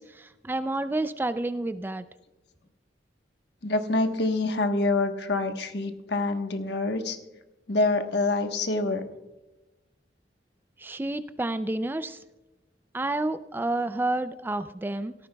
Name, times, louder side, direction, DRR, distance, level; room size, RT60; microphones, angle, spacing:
voice 1, 0.0-2.0 10.8-12.2 12.9-15.1, right 2 dB, 10° right, 12 dB, 0.3 m, -30 dB
voice 2, 3.6-7.2 7.7-9.0, left 2 dB, 70° left, 6 dB, 1.2 m, -26 dB
17.0 x 13.5 x 2.3 m, 1.0 s
head